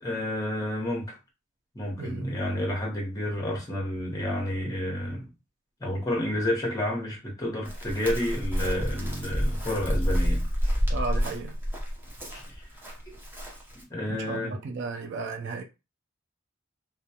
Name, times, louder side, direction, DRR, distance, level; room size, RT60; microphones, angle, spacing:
voice 1, 0.0-1.1 1.7-5.3 5.8-10.7 12.3-12.6 13.9-14.6, left 1 dB, 20° left, 0.9 m, -30 dB
voice 2, 2.0-2.3 10.9-11.6 14.1-15.6, right 4 dB, 60° right, 0.3 m, -34 dB
Chirp tweet, 7.6-13.8, equal, 10° right, 0.6 m, -29 dB
2.3 x 2.1 x 2.8 m
head